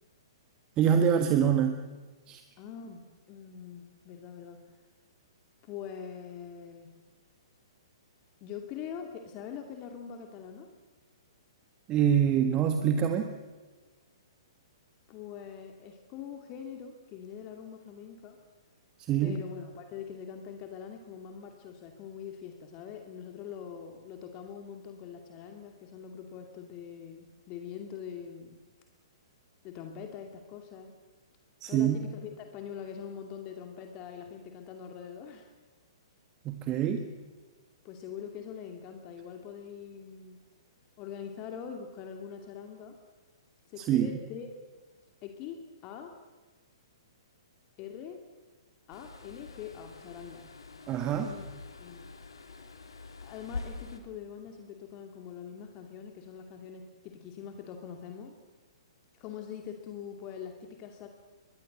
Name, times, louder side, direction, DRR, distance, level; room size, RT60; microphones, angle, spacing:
voice 1, 0.8-1.8 2.3-2.4 11.9-13.3 19.1-19.4 31.6-32.0 36.4-37.1 43.8-44.1 50.9-51.3, right 9 dB, 25° right, 6 dB, 1.6 m, -25 dB
voice 2, 2.6-4.6 5.6-6.9 8.4-10.7 15.1-18.4 19.2-28.6 29.6-30.9 31.7-35.5 37.8-40.4 41.0-43.0 43.7-44.5 45.2-46.1 47.8-48.2 48.9-50.4 51.2-51.5 51.8-52.1 53.2-58.3 59.1-61.1, left 8 dB, 30° left, 4 dB, 2.5 m, -43 dB
sound 1, 48.9-54.0, left 4 dB, 75° left, 3.4 m, -45 dB
24.0 x 21.0 x 8.0 m, 1.3 s
figure-of-eight pair, 115°, 3 cm